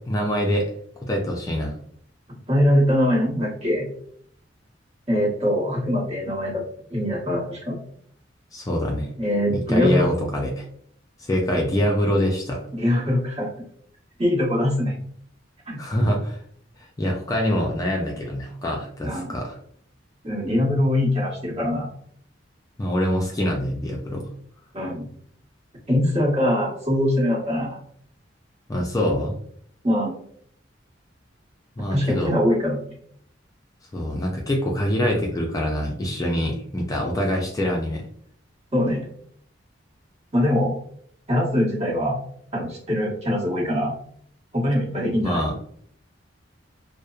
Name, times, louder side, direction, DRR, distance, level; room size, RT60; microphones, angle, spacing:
voice 1, 0.1-0.7 1.0-1.7 8.5-9.1 9.5-10.7 11.2-12.6 15.8-16.4 17.0-19.6 22.8-24.3 28.7-29.3 31.8-32.3 33.9-38.0 45.2-45.5, equal, 20° left, 0 dB, 0.3 m, -24 dB
voice 2, 2.3-3.9 5.1-6.6 6.9-7.8 9.2-10.1 12.7-13.5 14.2-15.0 15.7-15.8 19.0-19.3 20.2-21.9 24.7-25.1 25.9-27.8 29.8-30.2 31.9-32.8 38.7-39.1 40.3-40.7 41.3-42.2 42.5-43.9 44.5-45.4, left 1 dB, 35° right, -6 dB, 1.1 m, -22 dB
2.8 x 2.0 x 2.3 m, 0.63 s
head